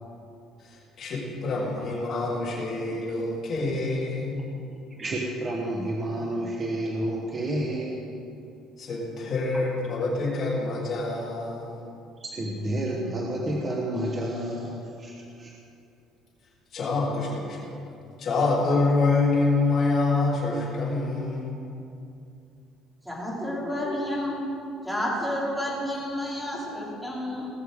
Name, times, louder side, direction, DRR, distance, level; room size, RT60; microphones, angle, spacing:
voice 1, 0.6-4.4 8.8-11.8 16.7-17.7 18.2-21.5, left 3 dB, 35° left, -5 dB, 3.4 m, -26 dB
voice 2, 5.0-8.2 9.5-9.7 12.2-15.5, right 1 dB, 20° right, -2 dB, 1.1 m, -30 dB
voice 3, 23.0-24.4 24.8-27.5, left 1 dB, ahead, -6 dB, 2.9 m, -30 dB
19.0 x 6.8 x 6.6 m, 2.6 s
cardioid pair, 180°, 0 cm